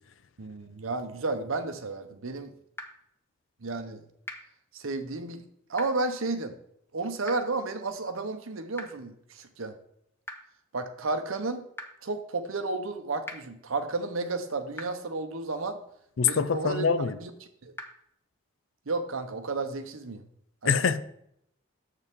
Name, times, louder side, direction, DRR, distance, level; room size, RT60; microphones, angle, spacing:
voice 1, 0.4-2.5 3.6-4.0 4.7-5.4 5.7-6.5 6.9-9.7 10.7-11.6 12.0-15.8 16.2-17.3 17.6-17.7 18.9-20.2 20.6-20.7, right 3 dB, 80° right, 7 dB, 0.8 m, -32 dB
sound 1, 2.7-2.8 4.2-4.4 5.7-5.9 7.2-7.3 8.7-8.8 10.2-10.3 11.7-11.8 13.2-13.3 14.7-14.9 16.2-16.3 17.7-17.8, left 1 dB, 10° left, 0.8 m, -38 dB
voice 2, 16.2-17.2 20.7-21.0, left 6 dB, 65° left, 13 dB, 0.5 m, -24 dB
7.1 x 6.7 x 3.6 m, 0.73 s
head